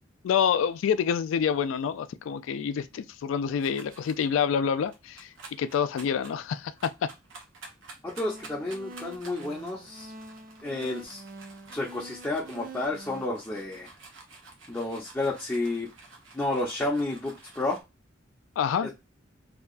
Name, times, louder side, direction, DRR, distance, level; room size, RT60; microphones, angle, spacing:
voice 1, 0.2-5.3 5.6-7.1 18.6-18.9, left 7 dB, 90° left, 0.3 m, -27 dB
sound 1, 3.6-4.3 4.9-17.8, right 3 dB, 85° right, 0.8 m, -50 dB
voice 2, 8.0-10.1 10.6-11.2 11.7-13.9 14.7-15.9 16.3-17.8 18.8-18.9, left 2 dB, 10° left, 0.5 m, -31 dB
sound 2, 8.2-13.2, right 2 dB, 45° right, 0.4 m, -45 dB
2.7 x 2.2 x 2.4 m
head